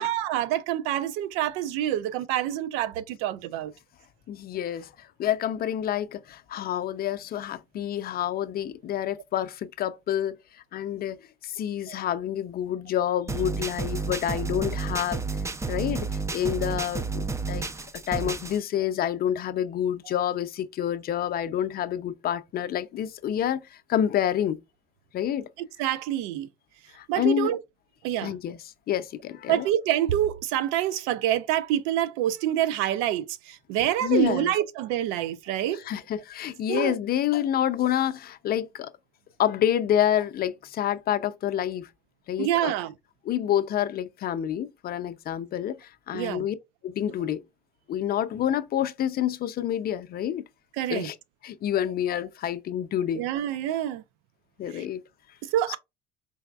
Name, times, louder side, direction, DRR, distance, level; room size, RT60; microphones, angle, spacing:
voice 1, 0.0-3.7 11.9-12.0 25.6-26.5 27.1-27.6 28.0-28.3 29.5-35.8 36.7-36.9 42.4-42.9 46.1-46.4 50.8-51.1 53.2-54.0 54.7-54.8 55.4-55.8, right 12 dB, 80° right, 0.4 m, -27 dB
voice 2, 4.3-10.4 10.7-15.2 15.7-17.7 17.9-24.6 25.1-25.5 26.9-27.5 28.2-28.6 28.9-29.7 34.0-34.5 35.7-38.9 39.4-41.9 42.3-42.7 43.3-46.6 46.8-47.4 47.9-50.4 50.9-51.2 51.4-53.2 54.6-55.0 55.7-55.8, left 10 dB, 50° left, 0.5 m, -28 dB
sound 1, 13.3-18.6, right 4 dB, 15° right, 0.5 m, -31 dB
4.0 x 3.4 x 2.3 m
supercardioid pair, 80°, 20 cm